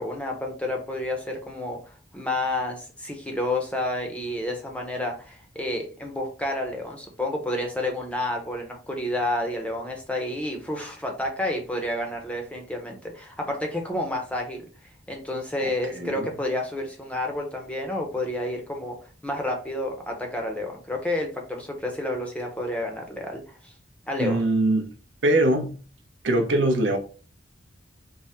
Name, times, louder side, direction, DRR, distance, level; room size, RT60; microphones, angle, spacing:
voice 1, 0.0-14.6 15.1-19.0 19.2-23.7 24.1-24.4, left 1 dB, 5° left, 0.6 m, -30 dB
voice 2, 16.0-16.3 24.2-24.9 25.2-25.7 26.2-27.0, right 1 dB, 75° right, 0.7 m, -22 dB
3.5 x 2.0 x 4.1 m
head